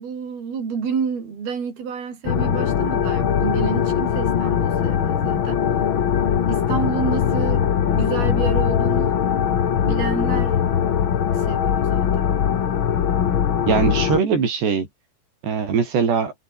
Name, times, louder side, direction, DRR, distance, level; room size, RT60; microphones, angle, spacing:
voice 1, 0.0-5.6 6.5-9.2 9.8-10.6 11.3-12.3, right 6 dB, 65° right, 6.7 m, -29 dB
sound 1, 2.2-14.2, left 8 dB, 85° left, 1.1 m, -21 dB
voice 2, 13.7-14.9 15.4-16.3, right 6 dB, 90° right, 7.4 m, -21 dB
omnidirectional pair, 4.7 m